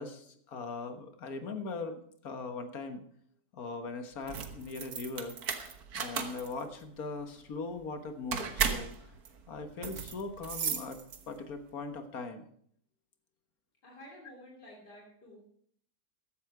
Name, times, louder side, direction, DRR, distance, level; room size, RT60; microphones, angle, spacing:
voice 1, 0.0-3.0 3.5-5.4 5.9-9.1 9.5-12.4, left 3 dB, 60° left, 8 dB, 1.8 m, -40 dB
sound 1, 4.2-11.5, right 6 dB, 65° right, 1.7 m, -36 dB
voice 2, 13.8-15.4, equal, 85° left, -2 dB, 3.7 m, -51 dB
15.0 x 11.5 x 4.9 m, 0.63 s
omnidirectional pair, 1.7 m